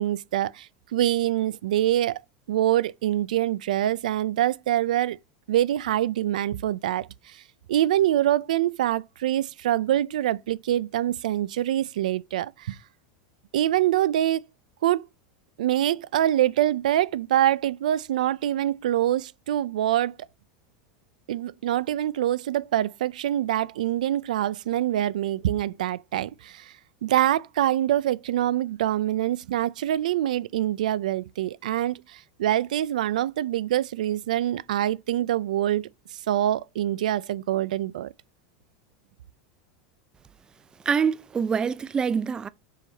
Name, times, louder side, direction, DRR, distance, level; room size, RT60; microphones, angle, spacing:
voice 1, 0.0-2.2 2.5-5.2 5.5-7.4 7.7-12.8 13.5-14.4 14.8-15.1 15.6-20.1 21.3-26.7 27.0-38.1, right 12 dB, 85° right, 0.4 m, -25 dB
voice 2, 40.9-42.5, right 6 dB, 20° right, 0.4 m, -25 dB
5.9 x 4.9 x 3.9 m
supercardioid pair, 120°, 4 cm